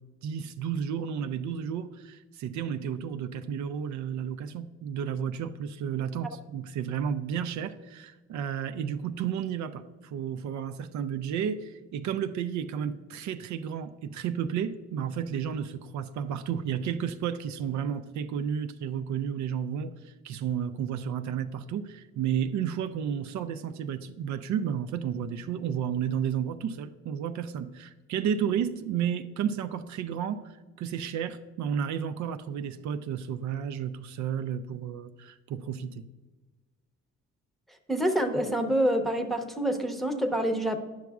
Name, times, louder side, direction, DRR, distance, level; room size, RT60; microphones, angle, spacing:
voice 1, 0.2-36.0, right 8 dB, 70° right, 10 dB, 0.5 m, -32 dB
voice 2, 37.9-40.8, right 1 dB, ahead, 3 dB, 0.8 m, -27 dB
10.5 x 6.0 x 2.3 m, 1.3 s
cardioid pair, 90°, 30 cm